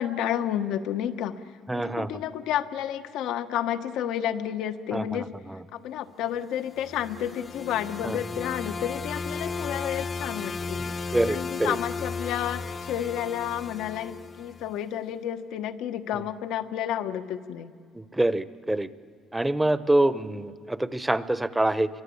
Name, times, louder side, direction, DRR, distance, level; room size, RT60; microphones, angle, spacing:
voice 1, 0.0-1.3 1.7-5.3 5.7-17.7, left 10 dB, 80° left, 9 dB, 1.2 m, -31 dB
voice 2, 1.7-2.1 4.9-5.2 8.0-8.2 10.8-11.8 17.9-18.9 19.3-21.9, right 1 dB, 10° right, 14 dB, 0.9 m, -25 dB
sound 1, 6.6-14.7, left 4 dB, 35° left, 0.9 m, -35 dB
25.5 x 23.0 x 8.7 m, 2.1 s
cardioid pair, 90°, 0 cm